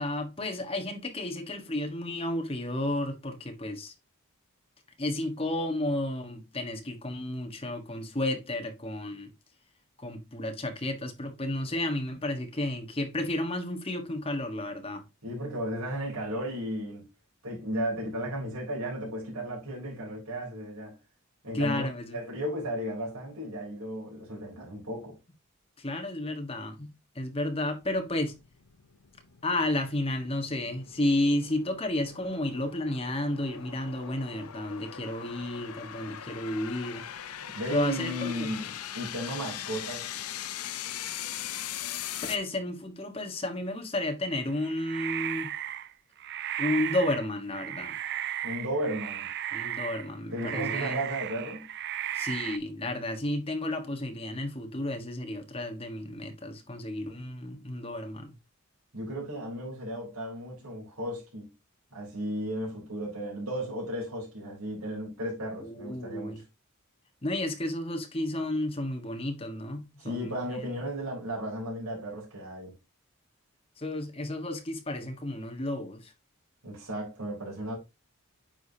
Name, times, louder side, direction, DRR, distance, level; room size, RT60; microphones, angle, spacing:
voice 1, 0.0-3.9 5.0-9.3 10.0-15.0 21.5-22.2 25.8-28.3 29.4-37.0 37.7-38.5 42.3-45.5 46.6-48.0 49.5-51.0 52.1-58.3 65.6-66.4 67.2-70.7 73.8-76.1, left 1 dB, 25° left, 1.3 m, -32 dB
voice 2, 15.2-17.1 17.4-21.0 21.4-25.2 37.5-40.1 48.4-49.3 50.3-51.7 58.9-61.5 61.9-66.4 70.0-72.7 76.6-77.8, equal, 85° right, 3.6 m, -35 dB
sound 1, 27.8-42.4, left 11 dB, 85° left, 0.6 m, -40 dB
sound 2, 44.3-45.9 46.2-47.3 47.5-50.1 50.3-52.6, right 11 dB, 50° right, 0.5 m, -35 dB
9.1 x 5.0 x 2.8 m
head